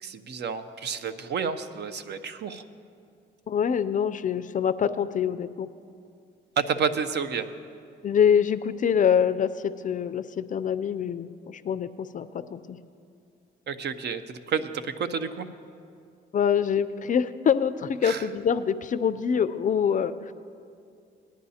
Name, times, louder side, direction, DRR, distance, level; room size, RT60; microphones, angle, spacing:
voice 1, 0.0-2.6 6.6-7.5 13.7-14.7 15.0-15.5 18.0-18.2, right 6 dB, 60° right, 10 dB, 0.7 m, -30 dB
voice 2, 3.5-5.7 8.0-12.8 16.3-20.3, left 7 dB, 40° left, 14 dB, 0.4 m, -25 dB
19.5 x 10.5 x 2.8 m, 2.4 s
cardioid pair, 90°, 20 cm